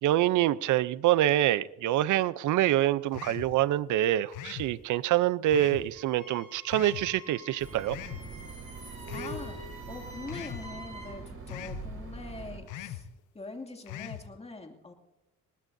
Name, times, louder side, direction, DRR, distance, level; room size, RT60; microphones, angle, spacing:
voice 1, 0.0-8.0, right 13 dB, 75° right, 0.6 m, -26 dB
sound 1, 3.1-3.5 4.3-4.7 5.5-5.9 6.7-7.1 7.9-8.2 9.1-9.4 10.3-10.6 11.5-11.8 12.7-13.0 13.9-14.2, left 12 dB, 90° left, 1.0 m, -40 dB
Wind instrument woodwind instrument, 5.9-11.2, equal, 20° right, 6.2 m, -49 dB
sound 2, 7.6-12.6, right 3 dB, 50° right, 5.0 m, -43 dB
voice 2, 9.1-13.1 13.3-14.9, left 3 dB, 20° left, 2.5 m, -43 dB
21.0 x 19.5 x 2.7 m
cardioid pair, 90°, 30 cm